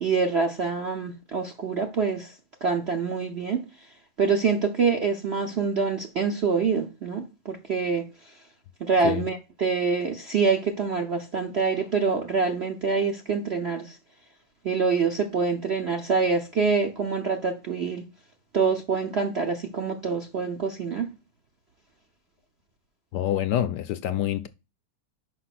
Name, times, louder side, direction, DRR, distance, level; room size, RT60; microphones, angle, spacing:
voice 1, 0.0-2.3 2.6-3.6 4.2-8.1 8.8-14.0 14.6-18.0 18.5-21.1, right 5 dB, 55° right, 0.7 m, -25 dB
voice 2, 23.1-24.5, left 11 dB, 70° left, 1.1 m, -26 dB
5.6 x 5.5 x 5.9 m
omnidirectional pair, 2.1 m